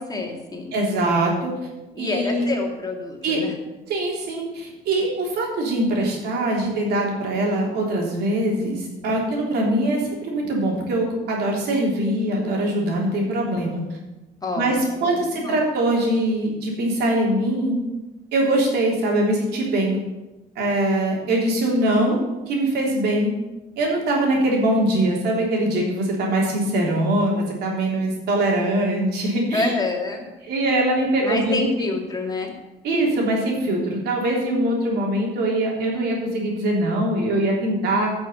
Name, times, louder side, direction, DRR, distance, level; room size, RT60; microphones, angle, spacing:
voice 1, 0.0-0.7 1.9-3.5 14.4-15.6 29.5-30.3 31.2-32.5, left 3 dB, 20° left, 1 dB, 2.2 m, -28 dB
voice 2, 0.7-1.5 2.0-2.4 3.2-3.4 3.9-13.8 14.6-17.8 18.3-20.0 20.5-22.2 22.5-23.3 23.8-29.7 30.4-31.7 32.8-38.1, right 1 dB, 75° right, -1 dB, 3.3 m, -22 dB
10.0 x 6.2 x 8.0 m, 1.1 s
cardioid pair, 110°, 17 cm